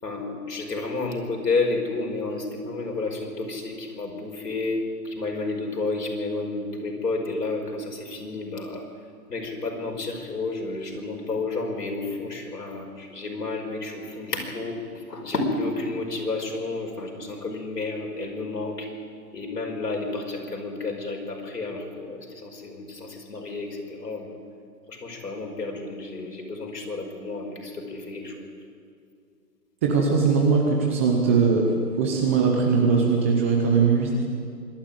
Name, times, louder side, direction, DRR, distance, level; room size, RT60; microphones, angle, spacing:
voice 1, 0.0-8.8 9.3-18.9 19.3-24.3 24.9-28.5, left 3 dB, 75° left, 2 dB, 5.5 m, -31 dB
voice 2, 29.8-31.7 32.0-34.2, right 5 dB, 10° right, 1 dB, 0.6 m, -20 dB
25.0 x 11.5 x 9.5 m, 2.3 s
figure-of-eight pair, 145°, 48 cm